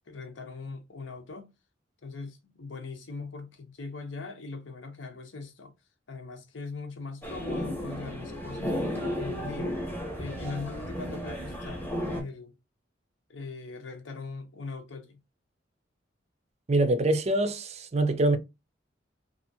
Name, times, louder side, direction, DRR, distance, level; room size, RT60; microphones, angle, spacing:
voice 1, 0.1-1.5 2.0-5.7 6.1-9.8 10.1-12.5 13.3-15.2, left 4 dB, 75° left, 0.7 m, -40 dB
sound 1, 7.2-12.2, equal, 10° left, 0.8 m, -34 dB
voice 2, 16.7-18.4, right 2 dB, 35° right, 0.4 m, -24 dB
2.7 x 2.4 x 2.6 m
head